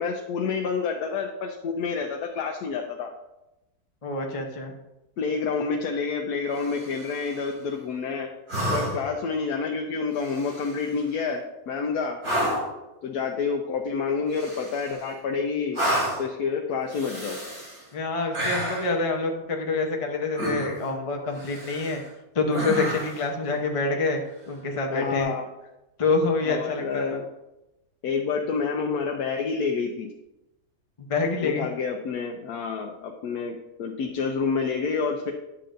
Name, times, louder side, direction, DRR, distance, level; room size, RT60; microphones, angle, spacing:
voice 1, 0.0-3.1 5.2-8.3 8.7-12.2 13.0-15.8 16.2-17.4 24.9-25.5 26.4-27.2 28.0-30.1 31.4-35.3, left 5 dB, 85° left, 2 dB, 1.2 m, -28 dB
voice 2, 4.0-4.7 17.9-22.0 22.3-24.2 24.5-25.3 26.0-27.2 31.1-31.7, left 3 dB, 30° left, 2 dB, 0.7 m, -26 dB
sound 1, 6.5-7.3 8.5-9.2 10.2-10.9 12.2-12.8 14.3-15.1 15.7-16.3 16.9-17.8 18.3-19.0 20.3-20.9 21.4-22.0 22.5-23.3 25.1-25.2, equal, 70° right, 3.4 m, -30 dB
10.0 x 6.8 x 2.5 m, 0.96 s
omnidirectional pair, 1.6 m